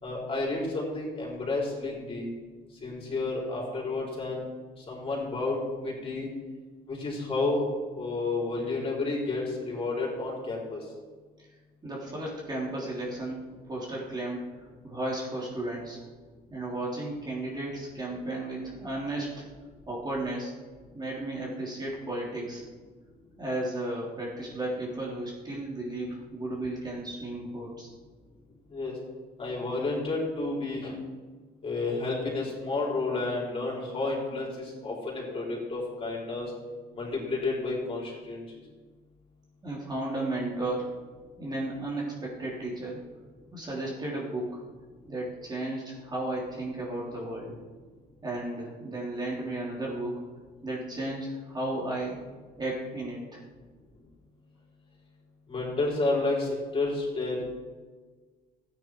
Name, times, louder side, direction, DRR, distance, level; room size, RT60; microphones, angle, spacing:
voice 1, 0.0-2.3 2.8-4.5 4.8-6.3 6.9-7.6 7.9-10.8 28.7-28.9 29.4-30.9 31.6-36.5 37.0-38.4 55.5-57.4, left 3 dB, 35° left, -4 dB, 4.7 m, -31 dB
voice 2, 11.8-13.4 13.7-14.4 14.8-16.0 16.5-19.5 19.9-20.5 20.9-22.6 23.4-27.9 39.6-40.9 41.4-43.0 43.5-44.6 45.1-47.5 48.2-50.1 50.6-52.2 52.6-53.4, right 1 dB, 25° right, -4 dB, 3.3 m, -34 dB
13.5 x 9.9 x 4.7 m, 1.4 s
cardioid pair, 110°, 17 cm